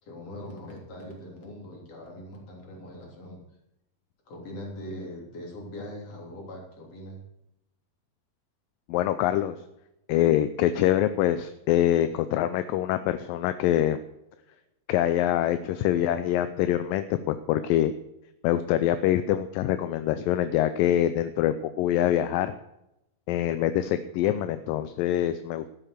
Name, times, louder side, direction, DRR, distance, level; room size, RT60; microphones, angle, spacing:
voice 1, 0.0-3.4 4.3-7.2 12.0-12.1, left 1 dB, 45° left, -1 dB, 4.3 m, -41 dB
voice 2, 8.9-9.6 10.1-14.0 14.9-17.9 18.4-22.5 23.3-25.7, left 12 dB, 80° left, 11 dB, 2.3 m, -25 dB
12.0 x 9.0 x 6.6 m, 0.85 s
omnidirectional pair, 4.1 m